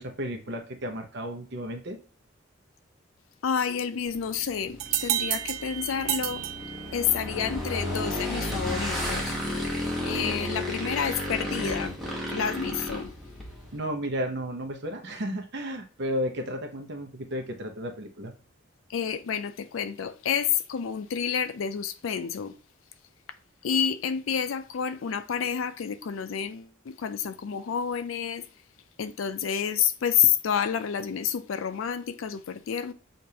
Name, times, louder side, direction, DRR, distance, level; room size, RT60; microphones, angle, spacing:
voice 1, 0.0-2.0 13.7-18.3, equal, 60° right, 0.7 m, -33 dB
voice 2, 3.4-6.4 6.9-9.4 10.0-12.0 12.3-13.1 18.9-22.6 23.6-28.4 29.0-32.9, left 7 dB, 85° left, 0.4 m, -29 dB
Motorcycle / Engine, 4.1-13.7, left 1 dB, ahead, 1.0 m, -33 dB
sound 1, 4.8-7.4, right 12 dB, 85° right, 0.3 m, -31 dB
6.6 x 2.5 x 2.8 m
head